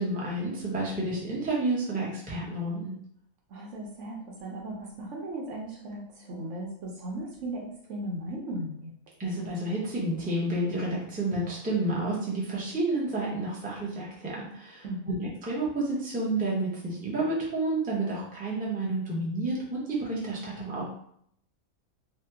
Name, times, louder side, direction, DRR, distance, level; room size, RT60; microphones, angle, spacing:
voice 1, 0.0-2.9 9.2-20.8, right 2 dB, 10° right, -5 dB, 0.5 m, -30 dB
voice 2, 3.5-8.9 14.8-15.3, right 1 dB, 65° right, -1 dB, 1.0 m, -37 dB
2.9 x 2.2 x 3.4 m, 0.69 s
omnidirectional pair, 1.4 m